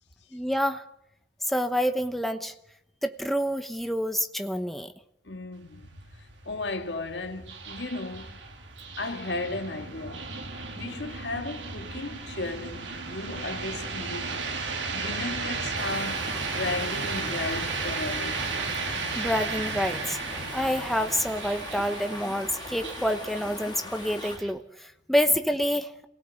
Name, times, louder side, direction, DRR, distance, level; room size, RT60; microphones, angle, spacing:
voice 1, 0.3-0.8 1.4-2.5 3.0-4.9 19.2-20.2 20.5-25.9, equal, ahead, 1.0 m, -27 dB
voice 2, 5.2-8.4 9.0-10.3 10.7-14.4 14.9-18.4 25.3-25.4, left 2 dB, 70° left, 1.9 m, -35 dB
sound 1, 5.5-24.5, right 4 dB, 80° right, 3.1 m, -35 dB
sound 2, 15.8-24.4, left 3 dB, 25° left, 1.9 m, -41 dB
27.5 x 18.0 x 8.1 m
head